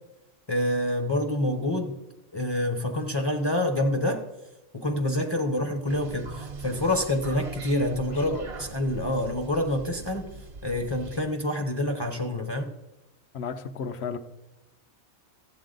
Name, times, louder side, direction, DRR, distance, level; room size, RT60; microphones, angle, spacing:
voice 1, 0.5-1.9 2.3-4.2 4.7-10.3 10.6-12.7, left 1 dB, 25° left, 3 dB, 0.7 m, -27 dB
sound 1, 5.9-11.2, right 3 dB, 65° right, 1.2 m, -42 dB
voice 2, 8.1-8.5 13.3-14.2, left 5 dB, 65° left, 9 dB, 0.9 m, -34 dB
12.5 x 8.1 x 3.9 m, 0.95 s
omnidirectional pair, 1.2 m